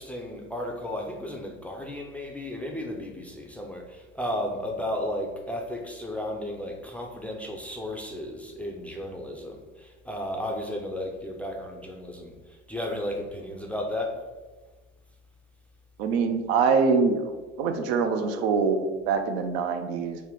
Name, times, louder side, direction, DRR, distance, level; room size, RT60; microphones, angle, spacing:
voice 1, 0.0-12.4 12.7-14.2, left 1 dB, 5° left, 0.4 m, -34 dB
voice 2, 16.0-17.2 17.6-20.2, right 5 dB, 70° right, 0.5 m, -24 dB
3.5 x 2.1 x 3.7 m
hypercardioid pair, 75°, 34 cm